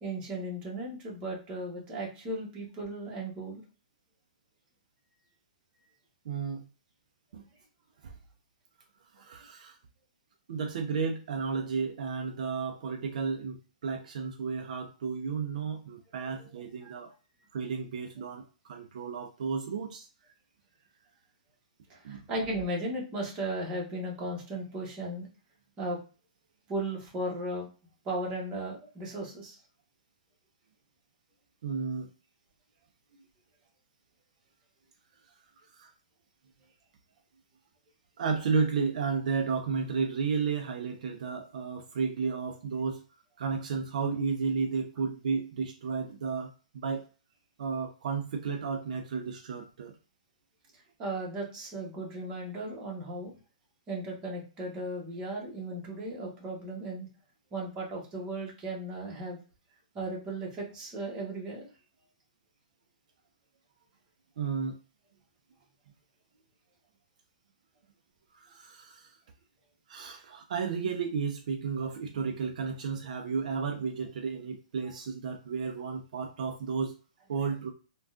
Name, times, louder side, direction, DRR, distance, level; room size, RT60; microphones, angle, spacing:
voice 1, 0.0-3.6 16.8-16.9 21.9-25.3 25.8-26.0 26.7-27.7 28.0-29.6 51.0-53.3 53.9-57.1 57.5-59.4 59.9-61.7, right 1 dB, 20° right, -2 dB, 1.0 m, -36 dB
voice 2, 6.3-6.7 7.3-7.4 8.0-8.1 9.1-9.8 10.5-13.6 13.8-17.1 17.5-20.1 22.0-22.2 31.6-32.1 35.7-35.9 38.2-43.0 43.4-47.0 47.6-49.9 64.4-64.8 68.3-69.2 69.9-77.0 77.3-77.7, right 5 dB, 65° right, 4 dB, 0.4 m, -33 dB
3.5 x 2.2 x 2.4 m, 0.34 s
hypercardioid pair, 155°, 4 cm